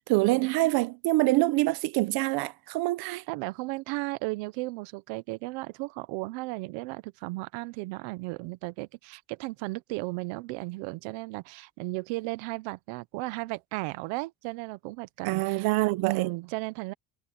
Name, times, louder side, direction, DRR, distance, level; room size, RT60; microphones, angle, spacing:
voice 1, 0.1-3.2 15.2-16.3, right 19 dB, 55° right, 0.8 m, -25 dB
voice 2, 3.3-15.7 16.0-16.9, right 23 dB, 75° right, 1.1 m, -35 dB
cardioid pair, 155°, 44 cm